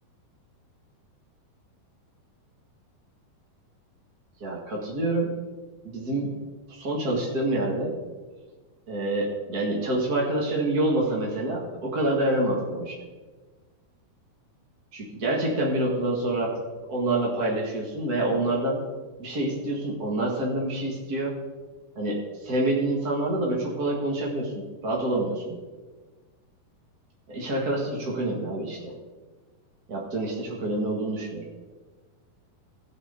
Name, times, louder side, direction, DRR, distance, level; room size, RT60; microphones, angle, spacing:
voice 1, 4.4-5.3 5.8-6.4 6.7-7.9 8.9-13.0 14.9-16.6 16.9-18.8 19.2-21.3 21.9-25.5 27.3-28.9 29.9-31.4, right 1 dB, 60° right, -3 dB, 0.9 m, -27 dB
17.0 x 6.7 x 3.8 m, 1.3 s
omnidirectional pair, 4.6 m